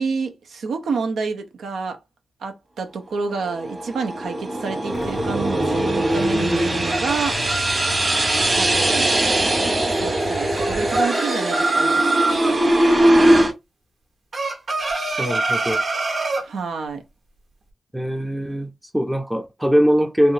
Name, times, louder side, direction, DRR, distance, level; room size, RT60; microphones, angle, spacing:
voice 1, 0.0-2.0 2.4-7.4 8.5-9.2 9.9-12.1 16.4-17.0, right 4 dB, 85° right, 0.7 m, -28 dB
sound 1, 3.4-13.5, right 1 dB, 40° right, 1.4 m, -20 dB
Motorcycle / Engine starting / Idling, 4.9-11.1, left 4 dB, 60° left, 0.4 m, -34 dB
sound 2, 6.5-8.5 10.5-12.6 14.3-16.5, right 2 dB, 55° right, 1.2 m, -25 dB
voice 2, 15.2-15.8 17.9-20.3, equal, 10° right, 0.5 m, -21 dB
3.5 x 2.6 x 2.7 m
cardioid pair, 55°, 0 cm